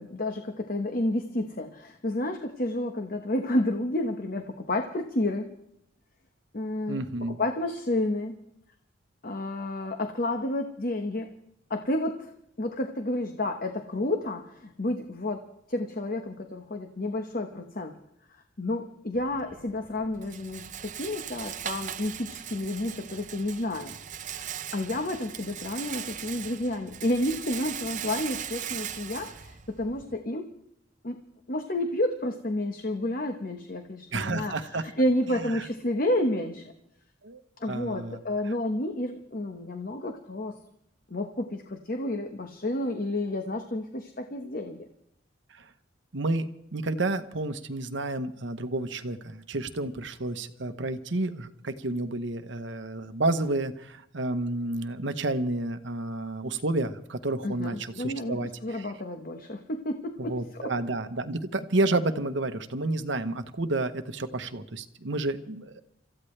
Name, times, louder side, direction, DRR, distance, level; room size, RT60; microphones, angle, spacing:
voice 1, 0.0-5.5 6.5-8.3 9.2-11.3 11.7-12.3 12.6-18.0 18.6-23.9 24.3-30.5 31.0-31.2 31.5-36.6 37.6-40.6 41.1-44.9 57.4-60.7, left 1 dB, 45° left, 5 dB, 1.2 m, -30 dB
voice 2, 6.9-7.4 34.1-34.9 35.3-35.7 37.2-37.4 37.7-38.2 45.5-45.7 46.1-58.9 60.2-65.8, right 2 dB, 70° right, 8 dB, 1.1 m, -30 dB
Rattle, 19.1-30.2, right 9 dB, 40° right, 0.7 m, -39 dB
27.0 x 14.5 x 3.3 m, 0.77 s
head